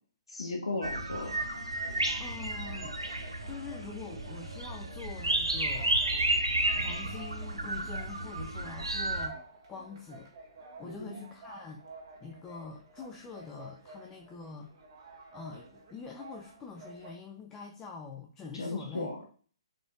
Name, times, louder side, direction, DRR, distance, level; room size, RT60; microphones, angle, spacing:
voice 1, 0.3-1.3 10.8-11.1 18.5-19.3, left 2 dB, 70° left, 1 dB, 1.1 m, -36 dB
sound 1, 0.8-9.3, right 2 dB, 80° right, 0.7 m, -32 dB
sound 2, 1.0-17.1, right 3 dB, 45° right, 1.4 m, -52 dB
voice 2, 2.2-2.9 3.4-6.0 6.7-9.4 9.7-10.3 10.8-11.8 12.2-14.7 15.3-19.2, left 5 dB, 15° left, 1 dB, 0.4 m, -45 dB
5.0 x 3.8 x 2.4 m, 0.43 s
figure-of-eight pair, 125°, 3 cm